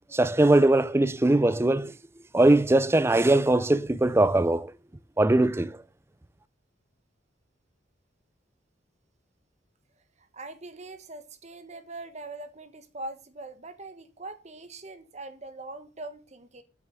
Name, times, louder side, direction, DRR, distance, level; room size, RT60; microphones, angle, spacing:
voice 1, 0.1-1.9 2.3-4.7 5.2-5.8, right 2 dB, 15° right, 0.5 m, -21 dB
voice 2, 10.2-16.6, right 2 dB, 40° right, 1.3 m, -42 dB
8.1 x 7.1 x 6.8 m
head